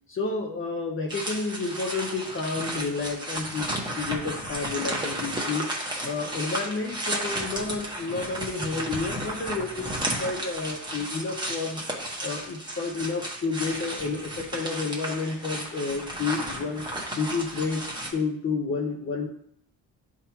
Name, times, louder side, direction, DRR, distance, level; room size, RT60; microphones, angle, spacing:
voice 1, 0.1-5.7 6.0-11.8 12.2-16.9 17.2-19.3, left 4 dB, 35° left, 1 dB, 0.9 m, -30 dB
sound 1, 1.1-18.1, right 1 dB, 10° right, 1.3 m, -33 dB
10.5 x 3.7 x 3.0 m, 0.67 s
cardioid pair, 130°, 35 cm